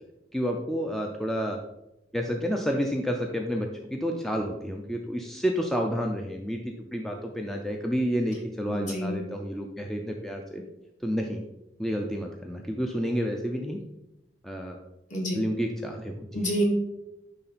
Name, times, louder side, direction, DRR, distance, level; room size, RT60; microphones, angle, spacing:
voice 1, 0.3-1.6 2.1-10.6 11.0-11.4 11.8-13.8 14.4-14.8 15.3-16.5, equal, ahead, 2 dB, 0.5 m, -30 dB
voice 2, 8.7-9.2 15.1-15.3 16.3-16.6, right 1 dB, 45° left, -2 dB, 2.1 m, -28 dB
9.8 x 3.8 x 4.1 m, 0.93 s
head